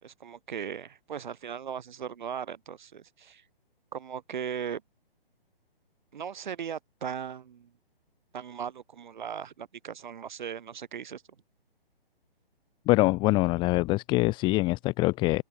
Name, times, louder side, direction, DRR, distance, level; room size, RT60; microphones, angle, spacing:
voice 1, 0.0-3.4 3.9-4.8 6.1-7.7 8.3-11.2, right 8 dB, 50° right, 2.8 m, -38 dB
voice 2, 12.9-15.4, left 21 dB, 15° left, 1.2 m, -24 dB
figure-of-eight pair, 140°, 30 cm